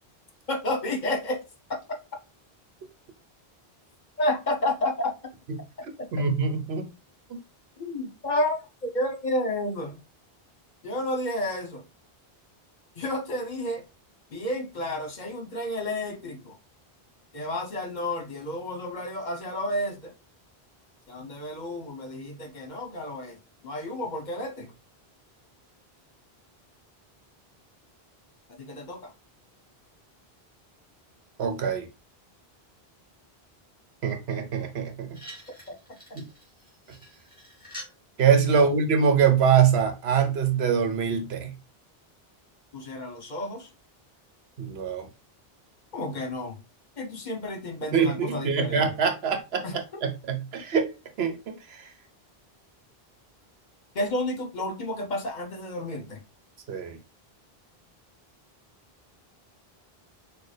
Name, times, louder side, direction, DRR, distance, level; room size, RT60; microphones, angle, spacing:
voice 1, 0.5-1.4 1.7-1.8 4.2-5.1 7.8-10.0 10.8-11.8 13.0-13.8 14.3-16.6 17.3-20.1 21.1-24.7 28.6-29.1 35.7-35.8 38.5-38.6 42.7-43.7 45.9-46.6 47.0-48.9 49.6-49.8 53.9-56.2, left 1 dB, 50° left, 1.0 m, -31 dB
voice 2, 6.1-6.9 7.3-7.4 31.4-31.9 34.0-35.1 36.1-36.2 38.2-41.5 44.6-45.1 47.9-49.6 50.0-50.9 51.2-51.9 56.7-57.0, right 6 dB, 80° right, 1.0 m, -24 dB
sound 1, 34.7-34.8 35.1-38.0 39.0-39.1, equal, 10° left, 2.9 m, -46 dB
6.4 x 2.4 x 3.3 m
omnidirectional pair, 1.0 m